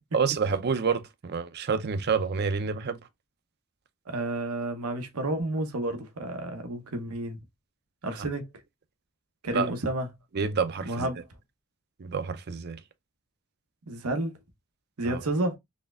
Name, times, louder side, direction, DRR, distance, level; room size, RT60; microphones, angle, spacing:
voice 1, 0.1-3.0 9.5-9.7 10.3-11.1 12.0-12.8 15.0-15.2, right 5 dB, 50° right, 0.5 m, -28 dB
voice 2, 4.1-7.4 8.0-8.5 9.4-10.1 10.8-11.2 13.9-14.3 15.0-15.6, right 2 dB, 85° right, 0.9 m, -30 dB
4.2 x 3.3 x 2.4 m
head